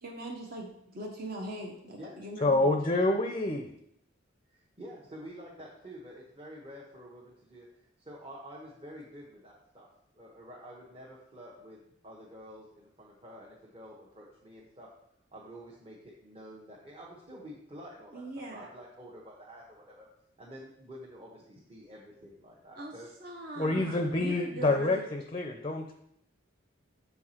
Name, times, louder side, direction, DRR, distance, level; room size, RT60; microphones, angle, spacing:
voice 1, 0.0-2.7 18.1-18.7 22.8-22.9 23.2-25.1, right 1 dB, 50° right, 0 dB, 1.0 m, -41 dB
voice 2, 2.4-3.7 23.6-25.9, left 2 dB, 25° left, 5 dB, 0.5 m, -27 dB
voice 3, 4.5-9.9 10.1-14.9 15.3-18.2 18.5-20.1 20.4-23.1 23.9-24.1, equal, 30° right, -5 dB, 1.1 m, -49 dB
6.9 x 4.7 x 4.3 m, 0.73 s
head